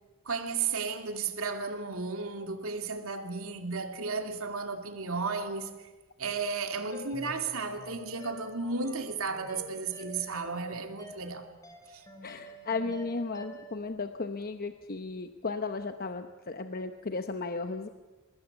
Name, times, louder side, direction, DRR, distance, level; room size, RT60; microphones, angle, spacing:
voice 1, 0.2-5.7 6.2-11.5 11.9-12.0, right 4 dB, 85° right, 2.6 m, -34 dB
sound 1, 6.9-13.8, right 1 dB, 15° left, 3.9 m, -48 dB
voice 2, 12.2-17.9, left 3 dB, 45° left, 0.9 m, -35 dB
24.0 x 21.0 x 8.1 m
head